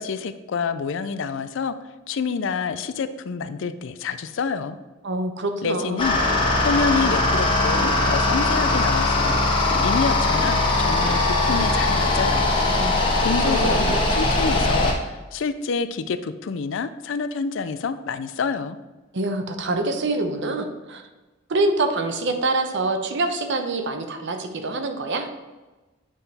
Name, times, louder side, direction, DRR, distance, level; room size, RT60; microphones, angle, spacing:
voice 1, 0.0-1.7 2.1-4.8 5.6-6.2 6.6-9.4 9.8-12.5 13.2-18.8, left 5 dB, 70° left, 12 dB, 0.4 m, -27 dB
voice 2, 5.0-6.0 12.7-13.1 13.5-14.0 19.1-21.0 21.5-25.3, right 2 dB, 60° right, 6 dB, 0.8 m, -25 dB
sound 1, 6.0-14.9, left 2 dB, 25° left, 1.2 m, -20 dB
8.9 x 3.8 x 4.1 m, 1.2 s
head